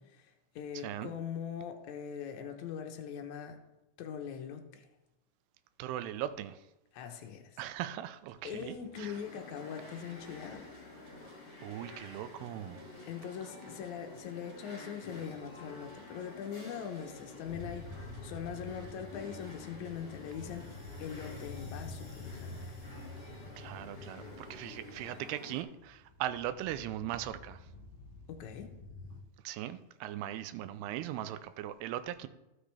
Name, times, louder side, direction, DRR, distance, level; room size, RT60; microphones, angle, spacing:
voice 1, 0.0-3.6 4.0-4.9 6.9-7.6 8.4-10.7 13.0-22.6 28.3-28.7, left 8 dB, 75° left, 1.7 m, -42 dB
voice 2, 5.8-6.6 7.6-9.2 11.6-12.9 23.6-27.6 29.4-32.3, right 12 dB, 90° right, 2.7 m, -39 dB
sound 1, 8.3-22.0, right 5 dB, 70° right, 2.9 m, -61 dB
sound 2, 8.9-25.6, left 3 dB, 30° left, 2.9 m, -50 dB
sound 3, 17.4-29.2, left 2 dB, 55° left, 2.3 m, -48 dB
15.0 x 6.2 x 3.4 m
omnidirectional pair, 4.6 m